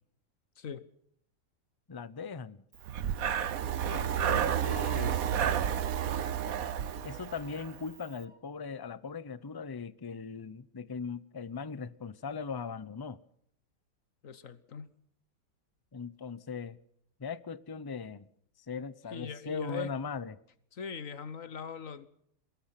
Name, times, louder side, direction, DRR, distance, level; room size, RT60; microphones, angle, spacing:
voice 1, 0.6-0.9 14.2-14.9 19.1-19.9 20.7-22.1, left 6 dB, 55° left, 1.5 m, -41 dB
voice 2, 1.9-2.6 3.8-5.5 7.0-13.2 15.9-16.8 17.2-18.3 18.7-20.4, left 5 dB, 35° left, 0.3 m, -39 dB
Breathing, 2.8-7.8, right 9 dB, 60° right, 1.4 m, -31 dB
Wind instrument woodwind instrument, 4.0-8.5, left 3 dB, 30° right, 6.2 m, -63 dB
23.5 x 20.5 x 5.9 m
omnidirectional pair, 1.8 m